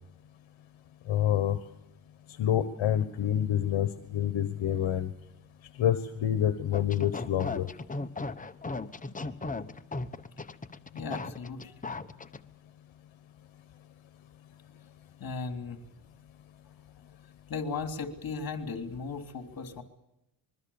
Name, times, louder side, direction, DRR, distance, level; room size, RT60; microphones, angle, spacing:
voice 1, 1.1-1.6 2.4-5.1 5.8-7.7, left 10 dB, 65° left, 10 dB, 1.4 m, -27 dB
sound 1, 6.7-12.4, left 3 dB, 15° left, 1.1 m, -37 dB
voice 2, 10.9-12.0 15.2-15.8 17.5-19.8, left 4 dB, 45° left, 7 dB, 3.3 m, -36 dB
25.5 x 22.5 x 7.2 m, 0.90 s
cardioid pair, 115°, 49 cm